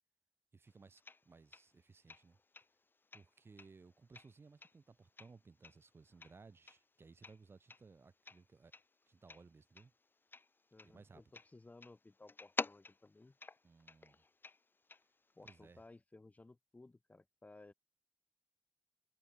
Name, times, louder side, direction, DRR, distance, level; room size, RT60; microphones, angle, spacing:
voice 1, 0.5-2.4 3.1-8.7 9.1-9.9 10.8-11.2 13.6-14.2 15.4-15.8, right 4 dB, 60° right, 1.8 m, -61 dB
sound 1, 0.7-5.3 5.6-15.9, left 3 dB, 50° left, 1.3 m, -49 dB
voice 2, 10.7-13.4 15.4-17.7, left 2 dB, 35° left, 1.6 m, -59 dB
wide cardioid pair, 75°, 5 cm